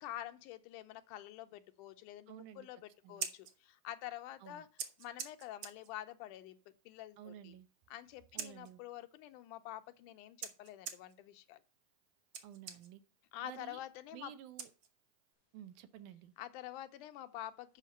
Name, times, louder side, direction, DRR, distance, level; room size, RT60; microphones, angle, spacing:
voice 1, 0.0-4.7 5.0-6.6 6.9-7.6 7.9-11.6 13.3-14.3 16.4-17.8, left 13 dB, 85° left, 2.2 m, -47 dB
voice 2, 2.3-2.7 3.0-3.2 4.4-4.7 7.2-7.7 8.3-8.8 12.4-13.0 13.4-13.8 14.1-14.7 15.5-16.3, right 11 dB, 80° right, 2.2 m, -52 dB
Scissors, 3.0-15.3, right 7 dB, 60° right, 1.5 m, -50 dB
7.5 x 5.7 x 6.5 m
omnidirectional pair, 3.6 m